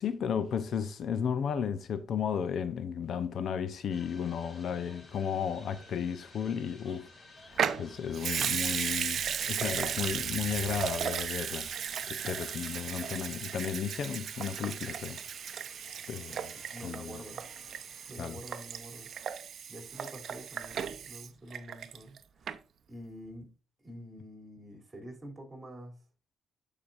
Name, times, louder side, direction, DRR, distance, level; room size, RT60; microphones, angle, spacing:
voice 1, 0.0-7.1 7.4-9.2 9.5-15.2 16.1-16.5 16.8-17.2 18.2-18.4, left 7 dB, 65° left, 0.7 m, -34 dB
sound 1, 3.9-18.1, left 2 dB, 40° left, 2.7 m, -55 dB
Water tap faucet / Sink (filling or washing) / Liquid, 7.5-22.2 22.5-22.6, right 8 dB, 60° right, 0.6 m, -35 dB
voice 2, 16.3-17.5 18.1-19.1 19.7-22.6 22.9-23.5 23.8-26.0, equal, 25° right, 3.1 m, -47 dB
11.5 x 5.0 x 2.5 m
cardioid pair, 90°, 0 cm